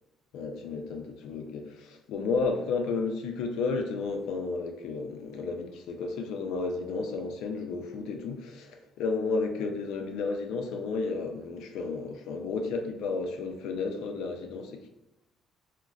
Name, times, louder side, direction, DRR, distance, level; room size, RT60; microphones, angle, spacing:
voice 1, 0.3-14.9, left 4 dB, 80° left, 4 dB, 0.5 m, -32 dB
3.8 x 2.1 x 2.3 m, 0.99 s
supercardioid pair, 75°, 0 cm